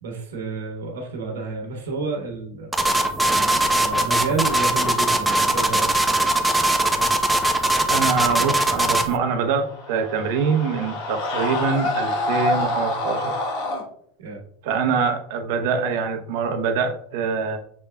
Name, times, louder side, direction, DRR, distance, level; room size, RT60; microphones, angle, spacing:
voice 1, 0.0-2.7 3.2-5.9 14.2-14.4, right 4 dB, 90° right, 1 dB, 1.1 m, -30 dB
sound 1, 2.7-9.1, right 1 dB, 5° right, 0.6 m, -20 dB
voice 2, 7.9-13.3 14.6-17.6, right 5 dB, 70° right, 6 dB, 0.8 m, -24 dB
Screaming, 9.4-13.8, left 2 dB, 65° left, 1.2 m, -26 dB
7.0 x 3.4 x 2.2 m, 0.65 s
supercardioid pair, 110°, 0 cm